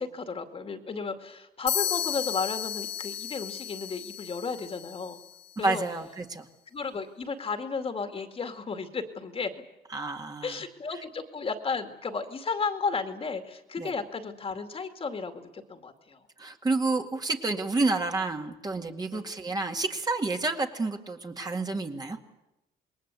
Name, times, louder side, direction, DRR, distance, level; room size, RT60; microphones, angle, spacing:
voice 1, 0.0-5.2 5.6-5.8 6.7-9.5 10.4-16.2 19.1-19.3, left 4 dB, 35° left, 6 dB, 2.3 m, -33 dB
sound 1, 1.7-5.4, left 11 dB, 75° left, 1.6 m, -34 dB
voice 2, 5.6-6.5 9.9-10.6 13.8-13.9 16.4-22.2, right 3 dB, 25° right, 3 dB, 2.2 m, -29 dB
27.5 x 21.5 x 8.3 m, 0.94 s
cardioid pair, 140°, 17 cm